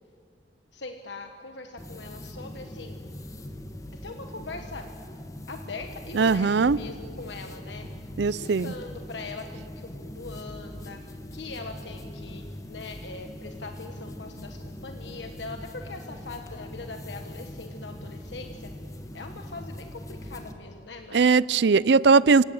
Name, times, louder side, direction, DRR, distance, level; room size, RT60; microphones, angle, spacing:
voice 1, 0.7-3.0 4.0-4.9 5.5-18.7 19.1-21.2, left 3 dB, 85° left, 1.3 m, -41 dB
sound 1, 1.8-20.5, left 1 dB, 20° left, 1.5 m, -41 dB
voice 2, 6.2-6.8 8.2-8.7 21.1-22.4, right 4 dB, 70° right, 0.5 m, -19 dB
25.5 x 17.0 x 7.9 m
head